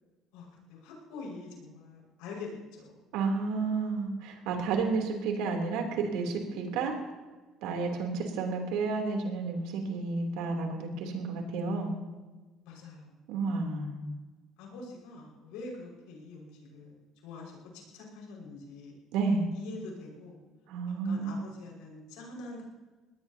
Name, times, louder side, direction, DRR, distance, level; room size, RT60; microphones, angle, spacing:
voice 1, 0.3-3.0 12.6-13.3 14.6-16.9 17.2-19.0 19.5-20.4 20.9-22.6, left 3 dB, 85° left, -1 dB, 5.7 m, -45 dB
voice 2, 3.1-6.9 7.6-12.0 13.3-14.0 19.1-19.5 20.7-21.3, right 4 dB, 80° right, 2 dB, 3.3 m, -31 dB
22.5 x 19.0 x 2.9 m, 1.2 s
supercardioid pair, 90°, 0 cm